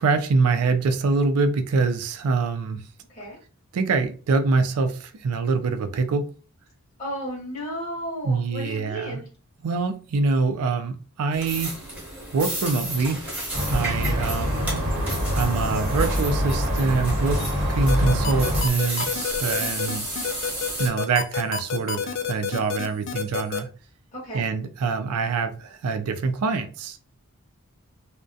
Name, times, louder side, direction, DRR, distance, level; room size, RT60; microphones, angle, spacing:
voice 1, 0.0-2.8 3.7-6.2 8.2-9.2 9.6-11.7 12.3-13.3 13.7-14.7 15.3-17.4 17.7-20.1 20.8-23.7 24.3-27.0, right 4 dB, 80° right, 7 dB, 0.4 m, -24 dB
voice 2, 7.0-9.3 13.8-14.1 24.1-24.4, equal, 30° left, -5 dB, 0.7 m, -34 dB
sound 1, 11.3-20.9, right 1 dB, 5° right, 0.7 m, -33 dB
sound 2, 13.5-18.6, equal, 60° right, 0.7 m, -25 dB
sound 3, 17.9-23.6, left 7 dB, 55° left, 0.3 m, -28 dB
2.3 x 2.1 x 2.5 m, 0.38 s
head